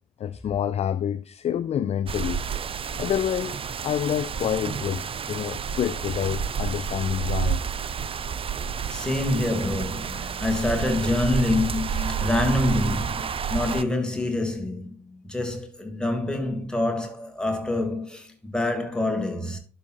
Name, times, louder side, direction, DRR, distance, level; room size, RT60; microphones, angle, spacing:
voice 1, 0.2-2.4 3.0-7.6, left 9 dB, 35° left, 0.4 m, -28 dB
sound 1, 2.1-13.8, right 7 dB, 30° right, 0.5 m, -30 dB
voice 2, 8.9-19.6, left 2 dB, 5° left, 2.4 m, -26 dB
11.5 x 6.3 x 2.5 m
figure-of-eight pair, 45°, 19 cm